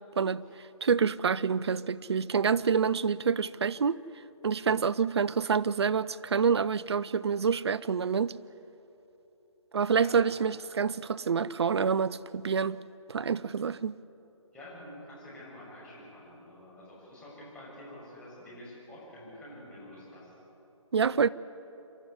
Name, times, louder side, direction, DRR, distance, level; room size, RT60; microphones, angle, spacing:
voice 1, 0.8-4.0 4.4-8.4 9.7-12.8 13.1-14.0 20.9-21.3, right 6 dB, 55° right, 0.6 m, -27 dB
voice 2, 14.5-20.3, left 1 dB, 5° left, 7.0 m, -48 dB
28.0 x 12.5 x 9.6 m
figure-of-eight pair, 155°, 17 cm